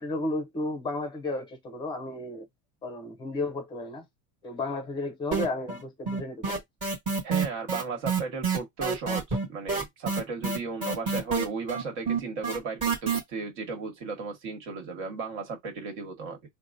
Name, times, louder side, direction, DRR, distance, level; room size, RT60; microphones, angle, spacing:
voice 1, 0.0-2.5 2.8-4.0 4.4-6.6, left 2 dB, 10° left, 0.6 m, -33 dB
sound 1, 5.3-5.8 6.1-13.2, right 5 dB, 20° right, 1.3 m, -27 dB
voice 2, 7.2-16.4, right 4 dB, 55° right, 1.5 m, -35 dB
4.6 x 2.2 x 2.6 m
cardioid pair, 180°, 40 cm